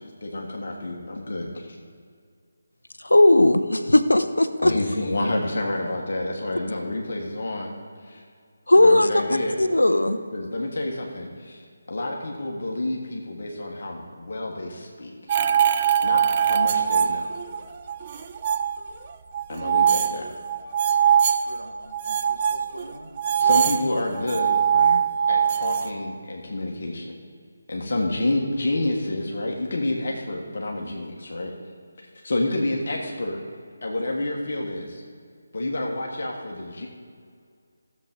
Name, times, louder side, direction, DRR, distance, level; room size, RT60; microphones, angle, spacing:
voice 1, 0.0-1.8 4.6-7.7 8.0-8.2 8.7-9.6 10.3-15.1 16.0-17.3 19.5-20.3 23.4-24.5 25.3-27.1 27.7-31.5 32.2-33.4 33.8-35.0 35.5-36.9, left 2 dB, 50° left, 0 dB, 1.5 m, -29 dB
voice 2, 3.0-4.7 8.7-9.1 9.6-10.2 24.7-25.0, left 1 dB, 75° left, 9 dB, 0.7 m, -17 dB
sound 1, 15.3-17.6 17.9-18.8 19.3-21.4 21.9-25.9, right 8 dB, 25° right, 0.4 m, -21 dB
voice 3, 21.5-23.6, right 1 dB, 80° right, 2 dB, 1.6 m, -43 dB
15.0 x 7.4 x 3.8 m, 2.1 s
figure-of-eight pair, 155°, 0 cm